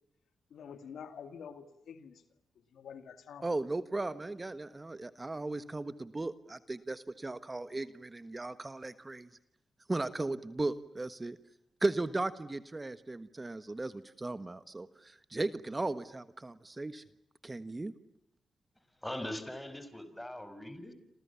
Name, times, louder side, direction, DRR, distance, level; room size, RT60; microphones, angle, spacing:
voice 1, 0.5-2.2 2.7-3.4, left 7 dB, 80° left, 10 dB, 2.2 m, -47 dB
voice 2, 3.4-9.3 9.9-11.4 11.8-17.0 17.4-17.9, right 2 dB, 25° right, 13 dB, 1.4 m, -36 dB
voice 3, 19.0-20.9, left 1 dB, 10° left, 11 dB, 5.6 m, -41 dB
28.0 x 28.0 x 7.2 m, 0.75 s
cardioid pair, 60°, 0 cm